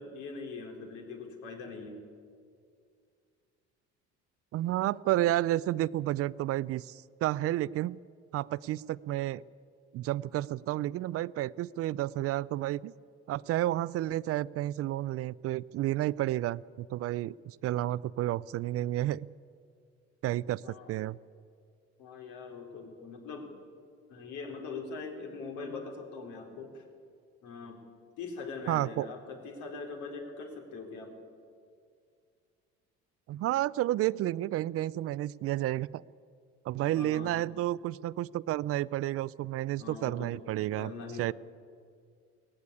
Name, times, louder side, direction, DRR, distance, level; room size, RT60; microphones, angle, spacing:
voice 1, 0.0-2.0 20.6-21.0 22.0-23.5 24.1-26.8 27.4-27.8 28.2-31.1 36.9-37.3 39.8-40.3 40.8-41.3, left 4 dB, 80° left, 3 dB, 3.8 m, -42 dB
voice 2, 4.5-8.0 8.3-9.4 9.9-12.9 13.3-19.3 20.2-21.2 28.7-29.1 33.3-36.0 36.7-40.9 41.2-41.3, right 14 dB, 50° right, 20 dB, 0.4 m, -31 dB
18.0 x 15.5 x 9.8 m, 2.3 s
cardioid pair, 135°, 30 cm